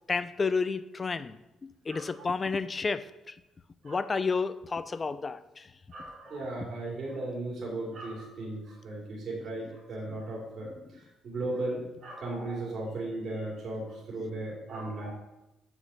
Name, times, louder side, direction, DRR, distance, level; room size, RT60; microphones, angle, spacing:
voice 1, 0.1-3.3 3.8-5.7, left 4 dB, 30° left, 14 dB, 0.5 m, -31 dB
voice 2, 1.9-2.3 3.8-4.1 5.9-15.1, right 2 dB, 60° right, -3 dB, 3.0 m, -36 dB
7.1 x 5.4 x 6.4 m, 0.94 s
cardioid pair, 90°, 0 cm